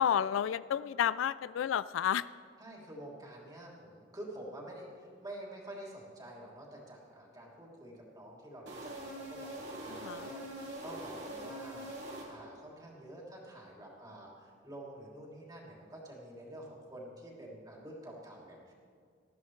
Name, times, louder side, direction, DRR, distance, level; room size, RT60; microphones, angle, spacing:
voice 1, 0.0-2.2 10.0-10.3, left 9 dB, 90° left, 17 dB, 0.3 m, -30 dB
voice 2, 2.6-11.9 12.3-18.7, right 1 dB, 20° right, -3 dB, 3.0 m, -48 dB
sound 1, 8.7-12.7, right 1 dB, 65° right, 3.4 m, -43 dB
20.0 x 13.5 x 3.2 m, 2.2 s
head